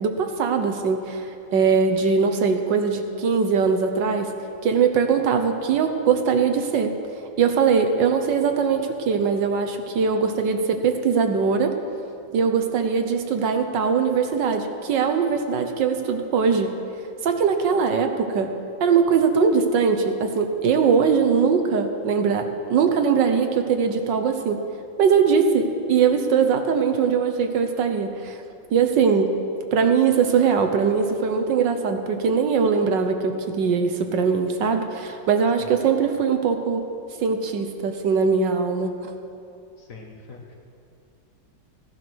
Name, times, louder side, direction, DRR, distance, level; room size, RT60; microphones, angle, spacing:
voice 1, 0.0-4.3 4.6-6.9 7.4-11.7 12.3-16.7 17.2-18.5 18.8-24.6 25.0-28.4 28.7-29.3 29.7-36.8 37.2-39.1, right 6 dB, 70° right, 6 dB, 1.5 m, -21 dB
voice 2, 39.8-40.5, left 3 dB, 45° left, 1 dB, 1.6 m, -43 dB
16.0 x 10.5 x 6.2 m, 2.6 s
omnidirectional pair, 2.1 m